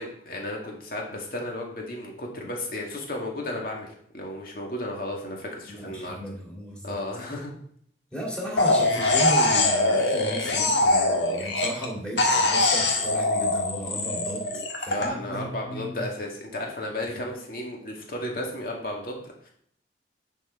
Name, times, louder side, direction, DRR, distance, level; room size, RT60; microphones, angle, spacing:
voice 1, 0.0-6.2 6.8-7.6 14.9-19.5, left 1 dB, 55° left, 0 dB, 2.1 m, -34 dB
voice 2, 5.7-7.0 8.1-14.4 14.8-16.0 17.2-17.3, right 1 dB, 5° left, -3 dB, 2.4 m, -35 dB
sound 1, 8.6-11.9 12.2-15.1, left 2 dB, 85° left, 1.6 m, -23 dB
10.5 x 4.6 x 4.4 m, 0.64 s
head